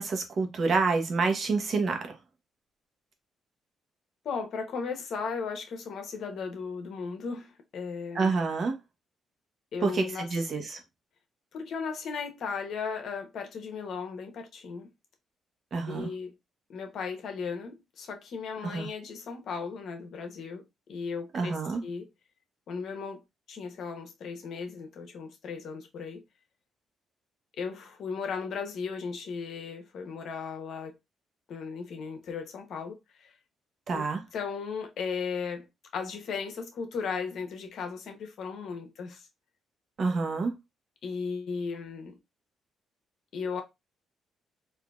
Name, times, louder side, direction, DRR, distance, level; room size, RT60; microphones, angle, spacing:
voice 1, 0.0-2.0 8.1-8.7 9.8-10.8 15.7-16.1 18.6-18.9 21.3-21.8 33.9-34.2 40.0-40.5, right 4 dB, 50° right, 1.0 m, -28 dB
voice 2, 4.2-8.4 9.7-10.4 11.5-14.9 15.9-16.3 16.7-22.1 22.7-26.2 27.6-30.9 31.5-33.3 33.9-39.3 41.0-42.2 43.3-43.6, left 5 dB, 65° left, 1.0 m, -36 dB
3.7 x 2.7 x 2.4 m
cardioid pair, 90°, 0 cm